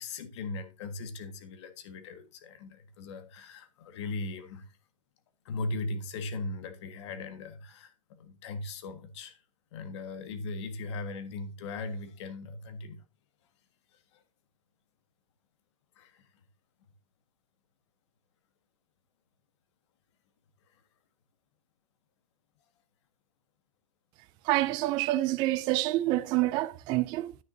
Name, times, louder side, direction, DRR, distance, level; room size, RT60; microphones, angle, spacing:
voice 1, 0.0-4.6 5.4-7.9 8.2-9.4 9.7-13.0 14.1-14.2 16.0-16.3, left 3 dB, 55° left, 1.6 m, -38 dB
voice 2, 24.4-27.4, right 17 dB, 25° right, 0.3 m, -27 dB
9.6 x 9.3 x 2.6 m
supercardioid pair, 150°, 17 cm